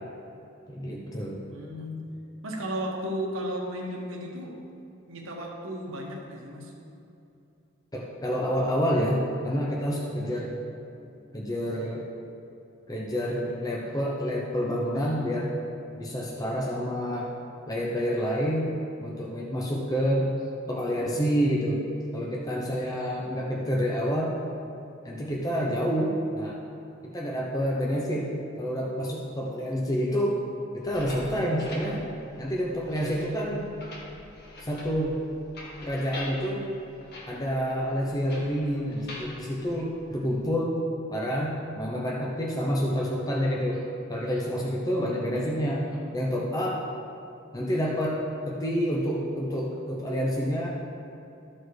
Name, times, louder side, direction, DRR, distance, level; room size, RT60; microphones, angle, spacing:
voice 1, 0.7-1.4 7.9-10.6 11.3-12.1 12.9-15.6 16.0-17.3 17.7-18.8 19.0-20.3 20.7-21.8 22.1-24.3 25.0-26.6 27.1-30.4 30.7-32.0 32.4-33.7 34.6-35.2 35.8-36.7 37.3-40.8 41.1-43.8 44.1-45.9 46.1-46.8 47.5-48.2 48.5-50.7, equal, 20° left, -3 dB, 0.8 m, -28 dB
voice 2, 1.5-2.1 2.4-4.6 5.1-6.7, equal, 70° right, -1 dB, 1.5 m, -34 dB
sound 1, 30.8-40.5, left 1 dB, 55° left, 1.5 m, -45 dB
13.0 x 4.4 x 4.7 m, 2.7 s
head